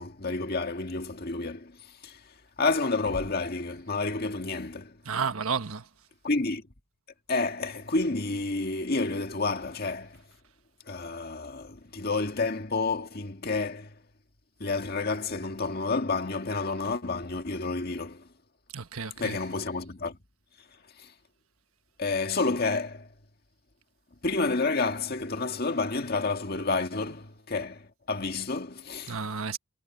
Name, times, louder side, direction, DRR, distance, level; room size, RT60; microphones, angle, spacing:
voice 1, 0.0-5.0 6.2-6.6 7.3-10.2 10.9-14.0 14.6-18.3 19.2-20.2 21.0-21.1 22.0-23.1 24.2-29.2, left 3 dB, 45° left, 1.8 m, -30 dB
voice 2, 5.0-5.9 18.7-19.4 29.1-29.6, right 5 dB, 90° right, 1.3 m, -31 dB
head